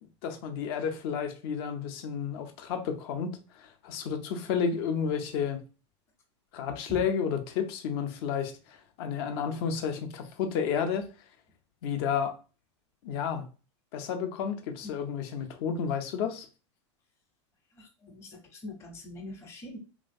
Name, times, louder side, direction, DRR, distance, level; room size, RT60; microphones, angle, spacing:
voice 1, 0.2-5.6 6.5-11.1 11.8-12.4 13.0-13.5 13.9-16.5, left 7 dB, 55° left, 0.7 m, -31 dB
voice 2, 17.8-19.8, left 2 dB, 15° left, 0.8 m, -43 dB
3.2 x 2.7 x 2.6 m
supercardioid pair, 145°, 16 cm